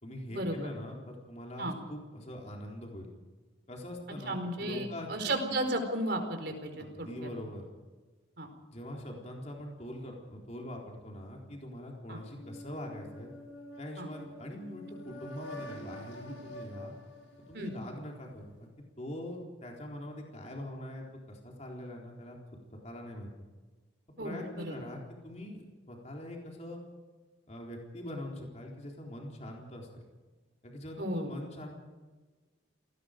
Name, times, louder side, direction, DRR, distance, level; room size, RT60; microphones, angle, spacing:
voice 1, 0.0-3.1 3.7-5.4 6.8-7.6 8.7-13.3 13.8-16.9 17.5-18.7 19.0-23.3 24.2-26.8 27.5-30.0 30.6-31.7, left 1 dB, 35° left, 0 dB, 4.0 m, -43 dB
voice 2, 4.3-7.3 8.4-8.5 12.1-12.2 14.0-14.1 17.5-17.7 24.2-24.7 31.0-31.3, right 1 dB, 55° right, 5 dB, 4.6 m, -34 dB
sound 1, 12.3-18.1, left 1 dB, 90° left, 6.8 m, -47 dB
28.0 x 19.5 x 5.2 m, 1.3 s
head